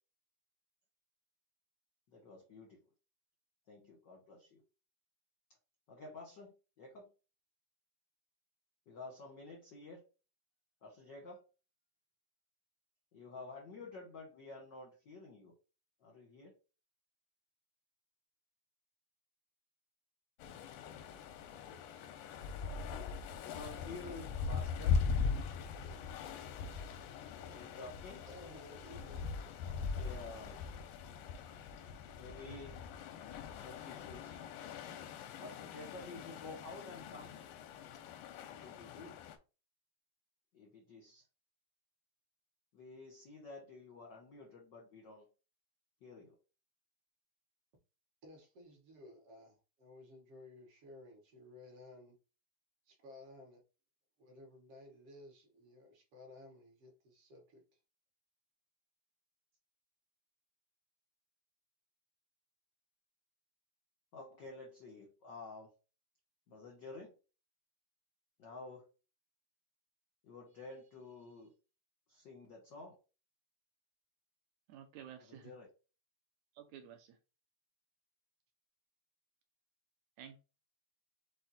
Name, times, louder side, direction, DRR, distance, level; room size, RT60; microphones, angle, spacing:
voice 1, 2.1-2.8 3.7-4.6 5.9-7.1 8.9-10.0 10.8-11.4 13.1-15.5 16.0-16.5 23.4-25.0 27.5-28.3 29.9-30.6 32.2-32.8 33.6-34.4 35.4-37.3 38.5-39.2 40.5-41.2 42.7-45.3 46.0-46.4 64.1-65.7 66.5-67.1 68.4-68.8 70.2-71.5 72.1-73.0 75.2-75.7, left 3 dB, 65° left, 1.1 m, -51 dB
sound 1, 20.4-39.4, left 5 dB, 90° left, 2.2 m, -41 dB
voice 2, 28.3-29.2 48.2-52.2 52.9-53.6 54.2-57.8, left 1 dB, 55° right, 2.0 m, -56 dB
voice 3, 74.7-75.5 76.6-77.2 80.2-80.4, right 9 dB, 75° right, 1.9 m, -52 dB
6.0 x 2.1 x 4.0 m
omnidirectional pair, 3.5 m